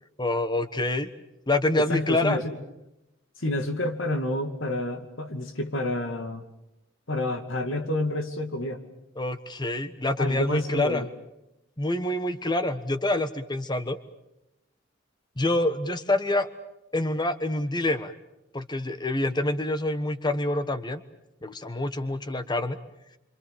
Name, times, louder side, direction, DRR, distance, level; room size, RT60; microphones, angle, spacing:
voice 1, 0.2-1.1 1.5-2.4 9.2-11.1 11.8-14.0 15.4-16.5 16.9-18.1 18.5-21.0 21.4-22.8, left 2 dB, 20° left, 11 dB, 1.4 m, -26 dB
voice 2, 1.7-2.6 3.4-6.4 7.1-8.8 10.2-11.1, left 1 dB, 85° left, 6 dB, 2.5 m, -29 dB
27.5 x 26.0 x 7.0 m, 0.89 s
head